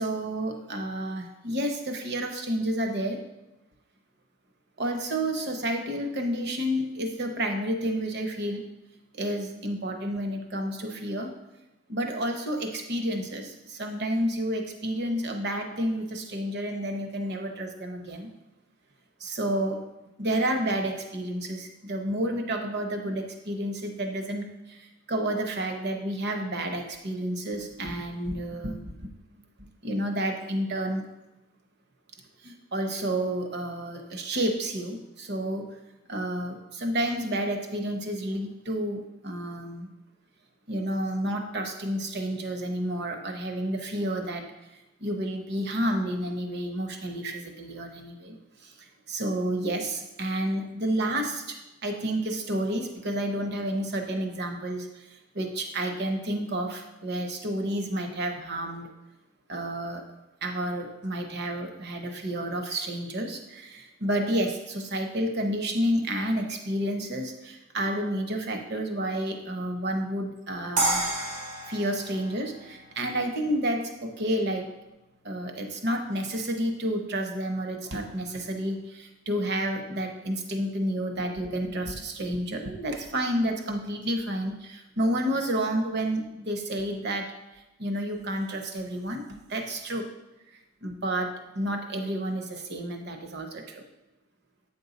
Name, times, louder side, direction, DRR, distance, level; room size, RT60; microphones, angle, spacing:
voice 1, 0.0-3.2 4.8-8.6 9.1-11.3 11.9-18.3 19.2-19.8 20.2-29.1 29.8-31.0 32.4-35.7 36.1-39.9 40.7-44.4 44.7-48.3 48.6-58.9 59.5-60.0 60.4-71.1 71.7-74.7 75.2-89.2 89.5-90.1 90.5-93.8, right 1 dB, 50° right, 5 dB, 0.8 m, -30 dB
sound 1, 70.8-73.8, right 2 dB, 80° right, 1.5 m, -31 dB
8.5 x 5.3 x 4.0 m, 0.96 s
head